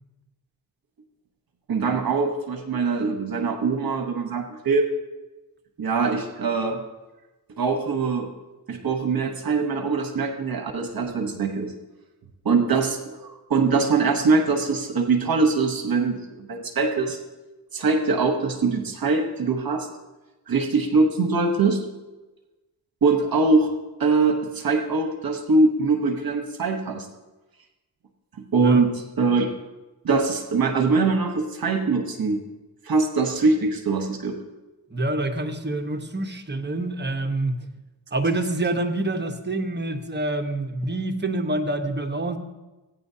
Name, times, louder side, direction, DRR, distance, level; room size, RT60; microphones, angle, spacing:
voice 1, 1.7-4.9 5.8-6.8 7.6-8.3 8.7-11.7 12.4-17.2 17.7-19.9 20.5-21.9 23.0-23.7 24.0-27.1 28.5-29.5 30.0-32.4 32.8-34.3, right 4 dB, 60° right, 5 dB, 1.1 m, -22 dB
voice 2, 34.9-37.6 38.1-42.4, right 2 dB, 25° right, 6 dB, 1.2 m, -26 dB
16.0 x 9.5 x 2.8 m, 1.1 s
cardioid pair, 45°, 40 cm